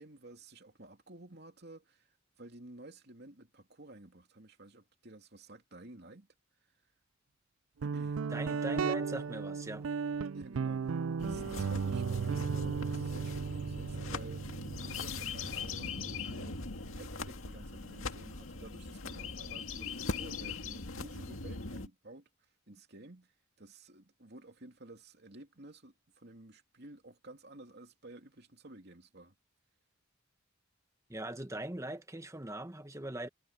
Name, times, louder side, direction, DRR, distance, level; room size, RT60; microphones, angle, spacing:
voice 1, 0.0-2.1 2.4-6.3 7.8-8.2 10.3-16.6 16.9-22.3 22.7-23.3 23.6-29.3, right 2 dB, 55° right, 3.0 m, -52 dB
Guitar, 7.8-17.3, right 5 dB, 85° right, 0.4 m, -36 dB
voice 2, 8.3-9.9 31.1-33.3, right 1 dB, 15° right, 1.3 m, -41 dB
sound 1, 11.2-21.9, left 4 dB, 90° left, 2.0 m, -41 dB
head